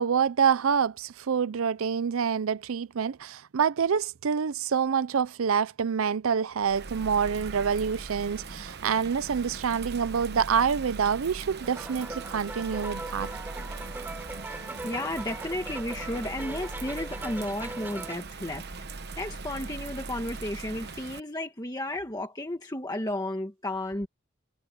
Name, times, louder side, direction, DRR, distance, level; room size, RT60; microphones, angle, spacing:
voice 1, 0.0-13.3, right 7 dB, 75° right, 0.5 m, -27 dB
Bird vocalization bird call bird song / Rain, 6.6-21.2, right 3 dB, 50° right, 1.0 m, -40 dB
sound 1, 11.6-18.2, right 2 dB, 10° right, 0.3 m, -40 dB
voice 2, 14.5-24.1, left 1 dB, 15° left, 1.5 m, -33 dB
head